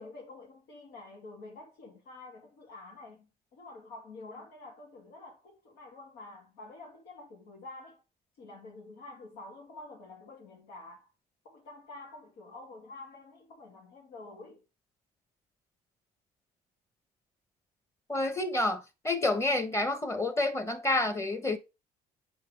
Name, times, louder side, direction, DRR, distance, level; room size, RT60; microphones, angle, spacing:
voice 1, 0.0-8.0 8.4-11.1 11.4-14.6, left 2 dB, 85° left, 2.4 m, -48 dB
voice 2, 18.1-21.6, left 2 dB, 15° left, 1.2 m, -29 dB
7.6 x 4.7 x 3.4 m
cardioid pair, 110°, 17 cm